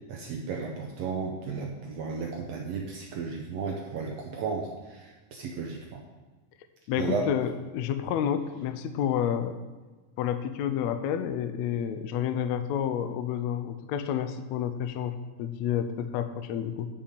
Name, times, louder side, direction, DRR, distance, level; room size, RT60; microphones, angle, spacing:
voice 1, 0.1-6.0 7.0-7.3, right 4 dB, 70° right, 0 dB, 1.6 m, -34 dB
voice 2, 6.9-9.6 10.2-16.9, left 9 dB, 80° left, 9 dB, 1.6 m, -30 dB
9.8 x 5.5 x 5.1 m, 1.3 s
omnidirectional pair, 3.8 m